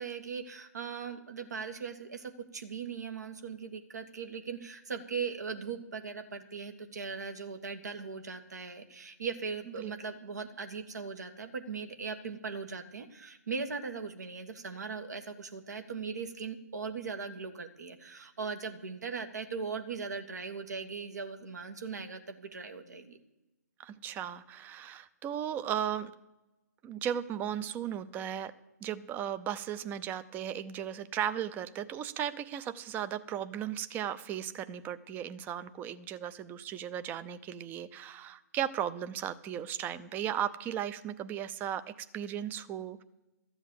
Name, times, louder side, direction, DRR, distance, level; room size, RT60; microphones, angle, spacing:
voice 1, 0.0-23.2, right 5 dB, 70° right, 7 dB, 1.6 m, -39 dB
voice 2, 23.8-26.1 26.8-28.5 28.8-41.8 42.1-43.0, right 10 dB, 20° right, 13 dB, 0.6 m, -36 dB
13.5 x 8.0 x 7.7 m, 0.99 s
figure-of-eight pair, 130°, 9 cm